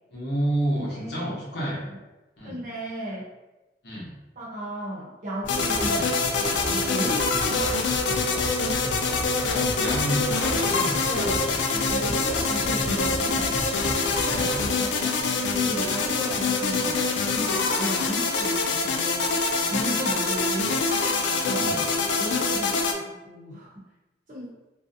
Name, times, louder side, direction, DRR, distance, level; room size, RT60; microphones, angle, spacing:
voice 1, 0.1-1.8 2.4-2.6 3.8-4.2 5.8-6.1 9.4-10.9 14.2-14.6 16.7-16.9 20.5-20.7 21.5-21.8, right 1 dB, 65° left, -5 dB, 0.8 m, -30 dB
voice 2, 0.7-1.4 2.4-3.3 4.4-6.0 6.3-7.8 8.6-8.8 9.5-9.7 11.1-11.4 11.7-13.5 14.3-17.0 17.3-19.3 19.7-20.9 21.4-21.8 22.2-23.7 24.3-24.5, equal, 45° right, -5 dB, 0.7 m, -34 dB
sound 1, 5.4-14.7, equal, 10° right, 0.4 m, -34 dB
sound 2, 5.5-22.9, left 3 dB, 90° left, 0.3 m, -25 dB
2.6 x 2.0 x 2.5 m, 1.1 s
head